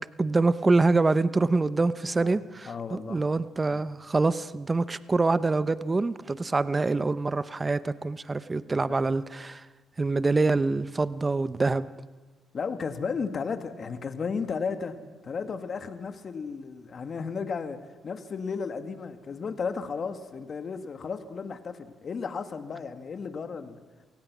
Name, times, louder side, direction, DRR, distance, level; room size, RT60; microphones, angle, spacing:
voice 1, 0.2-9.7 10.0-11.9, right 3 dB, 25° right, 15 dB, 0.7 m, -25 dB
voice 2, 2.7-3.3 3.7-3.8 8.8-9.0 12.5-17.8 18.0-23.8, left 5 dB, 45° left, 8 dB, 1.9 m, -34 dB
28.0 x 18.0 x 6.2 m, 1.3 s
cardioid pair, 90°, 0 cm